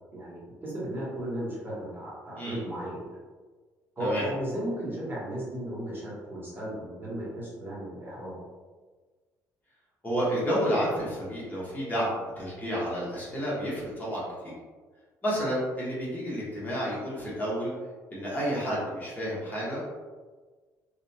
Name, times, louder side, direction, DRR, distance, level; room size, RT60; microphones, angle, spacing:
voice 1, 0.1-3.2 4.0-8.4, right 1 dB, 30° right, -7 dB, 1.3 m, -35 dB
voice 2, 10.0-14.5 15.2-17.7 18.1-19.8, equal, 20° left, -7 dB, 1.3 m, -30 dB
2.8 x 2.6 x 2.2 m, 1.4 s
supercardioid pair, 70°, 8 cm